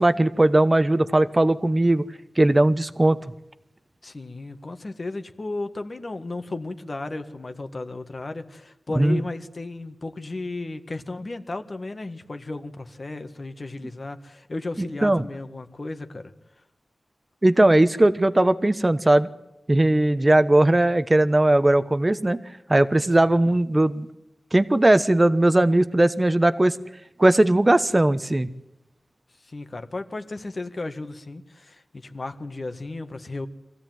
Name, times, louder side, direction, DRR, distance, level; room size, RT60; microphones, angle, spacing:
voice 1, 0.0-2.0 2.4-3.2 9.0-9.2 15.0-15.2 17.4-19.3 19.7-22.4 22.7-24.1 24.5-26.7 27.2-28.5, right 1 dB, 25° right, 13 dB, 1.1 m, -18 dB
voice 2, 4.0-16.3 29.4-33.5, left 2 dB, 45° left, 7 dB, 1.7 m, -34 dB
24.0 x 16.0 x 9.3 m, 0.90 s
wide cardioid pair, 95°, 0 cm